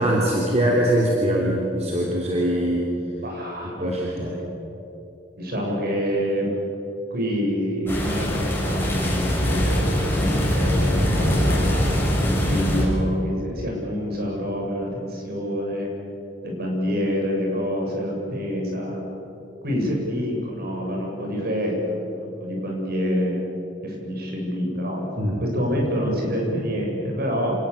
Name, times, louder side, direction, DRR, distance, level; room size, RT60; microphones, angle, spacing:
voice 1, 0.0-2.9 3.8-4.3 25.2-25.4, right 1 dB, 35° right, -3 dB, 3.4 m, -22 dB
voice 2, 3.2-4.4 5.4-6.5 7.1-15.9 16.4-19.0 19.6-23.4 23.8-27.5, equal, 55° right, 0 dB, 7.4 m, -27 dB
sound 1, 7.9-12.8, equal, 10° left, 7.3 m, -22 dB
28.0 x 19.0 x 8.4 m, 3.0 s
head